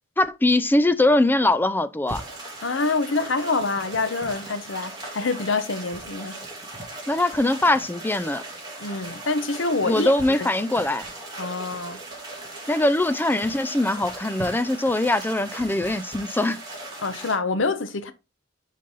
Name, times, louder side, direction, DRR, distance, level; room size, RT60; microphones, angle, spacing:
voice 1, 0.2-2.2 7.1-8.4 9.8-11.0 12.7-16.6, left 2 dB, 10° left, 0.4 m, -22 dB
sound 1, 2.1-17.4, right 2 dB, 20° right, 3.0 m, -38 dB
voice 2, 2.6-6.5 8.8-10.5 11.4-12.0 17.0-18.1, left 3 dB, 80° left, 0.9 m, -26 dB
6.5 x 5.3 x 3.9 m
head